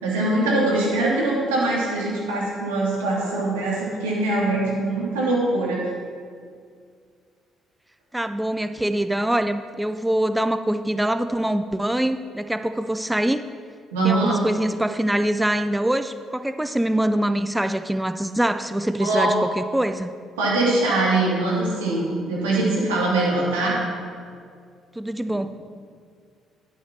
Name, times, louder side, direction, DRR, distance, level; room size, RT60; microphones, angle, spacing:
voice 1, 0.0-5.9 13.9-14.4 19.0-19.3 20.4-23.8 25.3-25.5, right 2 dB, 90° right, -5 dB, 2.6 m, -22 dB
voice 2, 8.1-13.4 14.0-20.1 25.0-25.5, right 1 dB, 10° right, 10 dB, 0.5 m, -24 dB
11.0 x 5.7 x 5.8 m, 2.1 s
hypercardioid pair, 55°, 0 cm